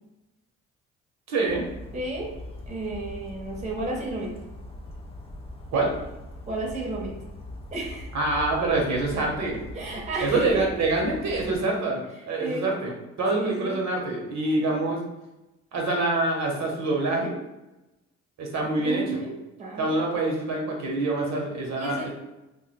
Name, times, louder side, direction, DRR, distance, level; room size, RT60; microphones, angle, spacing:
voice 1, 1.3-1.6 5.7-5.9 8.1-9.6 10.2-12.9 13.2-15.0 15.7-17.4 18.4-19.2 19.8-22.1, right 2 dB, 65° right, 0 dB, 0.8 m, -26 dB
Bird vocalization bird call bird song, 1.5-11.6, left 1 dB, 20° left, 0.4 m, -41 dB
voice 2, 1.9-2.3 2.7-4.4 6.5-7.2 7.7-8.1 9.7-10.7 12.2-12.7 13.3-13.8 14.5-14.7 18.8-19.3 19.6-19.9 21.7-22.1, right 2 dB, 25° right, -1 dB, 0.8 m, -32 dB
2.6 x 2.1 x 4.0 m, 0.99 s
cardioid pair, 90°, 30 cm